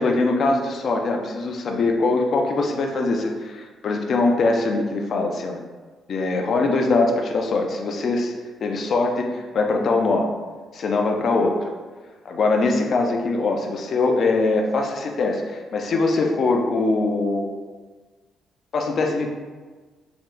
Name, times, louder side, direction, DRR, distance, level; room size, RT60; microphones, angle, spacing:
voice 1, 0.0-5.6 6.1-8.3 8.6-10.3 10.7-11.6 12.3-17.6 18.7-19.3, left 3 dB, 55° left, 3 dB, 0.5 m, -22 dB
4.3 x 2.1 x 3.8 m, 1.4 s
cardioid pair, 90°, 0 cm